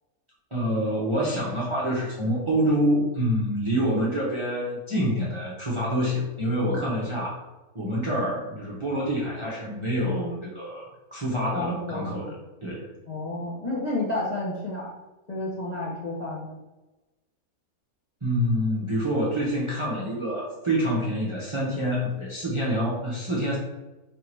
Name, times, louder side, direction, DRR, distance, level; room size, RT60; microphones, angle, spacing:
voice 1, 0.5-7.4 7.7-10.9 11.1-12.3 12.6-12.9 18.2-23.6, equal, 25° right, -6 dB, 0.8 m, -26 dB
voice 2, 10.0-10.3 11.5-12.3 13.1-14.9 15.3-16.6, left 1 dB, 35° left, -7 dB, 0.9 m, -31 dB
3.4 x 2.8 x 4.5 m, 1.1 s
omnidirectional pair, 1.5 m